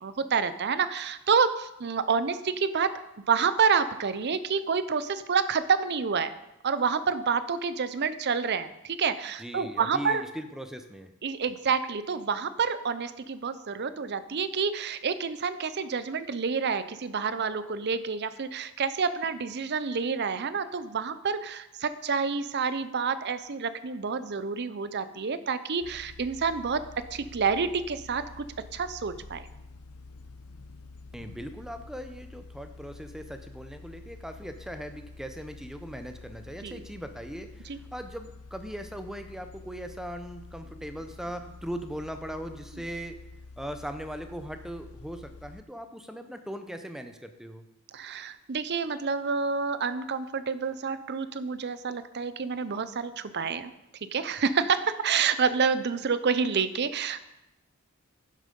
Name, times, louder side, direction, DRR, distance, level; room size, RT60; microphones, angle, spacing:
voice 1, 0.0-2.9 3.3-6.3 6.6-10.2 11.2-26.8 27.1-28.4 28.7-29.5 36.6-36.8 37.7-37.8 47.9-53.7 54.1-57.2, right 5 dB, 50° right, 13 dB, 0.6 m, -28 dB
voice 2, 9.4-11.1 31.1-43.2 43.6-47.6, equal, ahead, 7 dB, 0.6 m, -39 dB
sound 1, 25.8-45.6, left 3 dB, 75° left, 0.7 m, -48 dB
10.5 x 7.5 x 5.3 m, 0.92 s
head